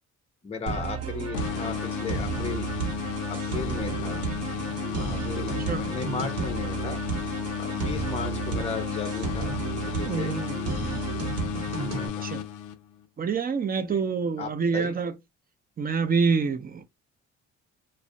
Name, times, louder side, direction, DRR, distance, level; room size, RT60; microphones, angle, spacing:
voice 1, 0.4-2.7 3.3-4.3 4.9-7.0 7.6-9.5 9.8-10.4 11.9-12.3 13.8-14.0 14.4-15.0, left 5 dB, 20° left, 0.5 m, -36 dB
sound 1, 0.7-12.1, right 5 dB, 55° right, 0.8 m, -32 dB
sound 2, 1.3-13.1, left 10 dB, 90° left, 0.5 m, -33 dB
voice 2, 10.1-10.6 12.0-12.4 13.2-15.2 15.8-16.8, right 5 dB, 30° right, 0.5 m, -27 dB
2.3 x 2.1 x 2.6 m
cardioid pair, 90°, 30 cm